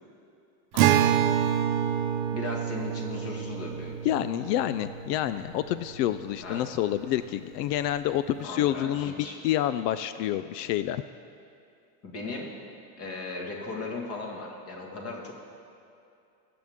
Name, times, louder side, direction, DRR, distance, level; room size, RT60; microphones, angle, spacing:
voice 1, 0.7-1.2 2.3-4.0 6.4-6.7 8.4-9.4 12.0-12.6 13.0-15.3, left 3 dB, 30° left, 0 dB, 1.8 m, -37 dB
Acoustic guitar, 0.8-6.2, right 10 dB, 55° right, 0.8 m, -27 dB
voice 2, 4.0-9.1 9.4-11.0, left 12 dB, 85° left, 13 dB, 0.6 m, -28 dB
22.5 x 7.9 x 3.6 m, 2.6 s
supercardioid pair, 155°, 47 cm